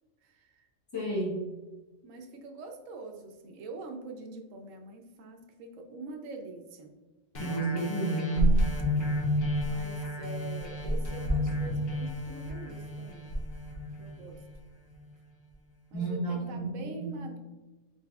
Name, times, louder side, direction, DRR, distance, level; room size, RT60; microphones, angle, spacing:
voice 1, 0.2-0.7 2.0-6.9 8.7-9.1 9.6-13.3 14.0-14.4 15.9-17.4, right 3 dB, 80° right, 3 dB, 1.0 m, -44 dB
voice 2, 0.9-1.4 7.4-8.6 15.9-17.1, right 3 dB, 20° left, -8 dB, 0.8 m, -31 dB
sound 1, 7.3-14.5 15.1-15.2, left 1 dB, 55° left, 1.2 m, -30 dB
4.1 x 4.0 x 2.3 m, 1.2 s
omnidirectional pair, 1.3 m